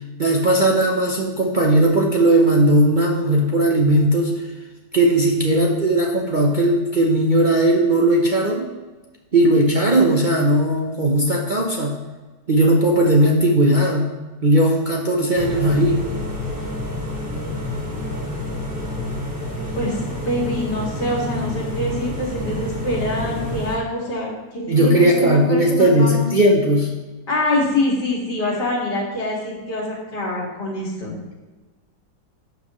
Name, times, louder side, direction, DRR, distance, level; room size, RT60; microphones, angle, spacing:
voice 1, 0.2-4.5 4.9-8.7 9.3-12.0 12.5-14.1 14.4-16.0 24.7-26.9, right 1 dB, 35° right, -2 dB, 0.8 m, -17 dB
sound 1, 15.3-23.8, left 1 dB, 5° right, 2.2 m, -28 dB
voice 2, 20.3-24.3 24.5-26.3 27.3-31.1, left 1 dB, 75° left, -3 dB, 3.0 m, -24 dB
12.0 x 7.7 x 3.1 m, 1.2 s
omnidirectional pair, 1.9 m